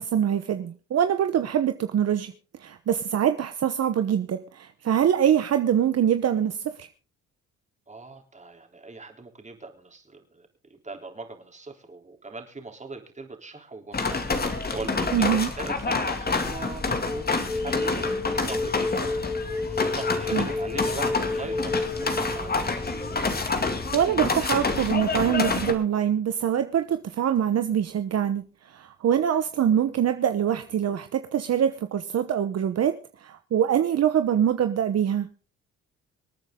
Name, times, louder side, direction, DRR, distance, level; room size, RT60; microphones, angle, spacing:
voice 1, 0.0-2.3 2.6-6.9 15.1-15.5 20.3-20.5 23.9-35.3, right 9 dB, 55° right, 8 dB, 1.0 m, -24 dB
voice 2, 7.9-15.3 15.6-19.3 19.7-22.8, right 3 dB, 25° right, 3 dB, 3.6 m, -40 dB
sound 1, 13.9-25.7, left 3 dB, 30° left, 2.4 m, -28 dB
sound 2, 14.3-15.1 16.7-24.4, left 3 dB, 5° right, 3.9 m, -32 dB
26.0 x 9.0 x 3.8 m, 0.37 s
cardioid pair, 90°, 30 cm